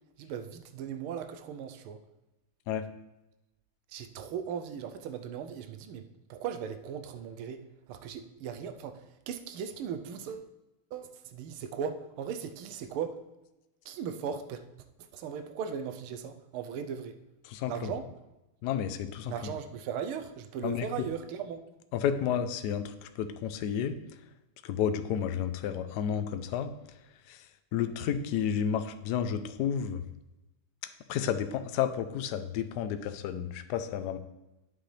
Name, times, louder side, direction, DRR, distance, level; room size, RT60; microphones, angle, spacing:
voice 1, 0.2-2.0 3.9-10.5 10.9-13.2 13.8-14.6 15.1-17.2 17.7-18.1 19.3-21.6, right 7 dB, 85° right, 8 dB, 1.6 m, -38 dB
voice 2, 17.4-17.9 18.6-19.3 20.6-20.8 21.9-24.0 24.6-26.7 27.3-27.4 27.7-30.0 31.1-34.2, left 8 dB, 70° left, 10 dB, 1.0 m, -31 dB
8.8 x 7.7 x 3.3 m, 0.97 s
omnidirectional pair, 2.3 m